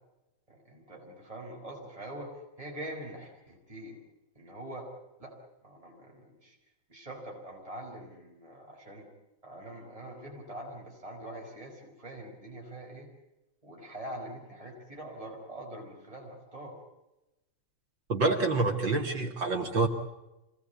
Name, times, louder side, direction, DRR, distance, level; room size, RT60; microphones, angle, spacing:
voice 1, 0.5-4.0 4.4-4.9 5.2-5.3 5.6-6.6 6.9-9.1 9.4-13.1 13.6-16.7, right 1 dB, 15° right, -1 dB, 5.6 m, -44 dB
voice 2, 18.1-19.9, right 3 dB, 60° right, 3 dB, 2.9 m, -27 dB
27.5 x 19.5 x 8.4 m, 0.97 s
omnidirectional pair, 2.3 m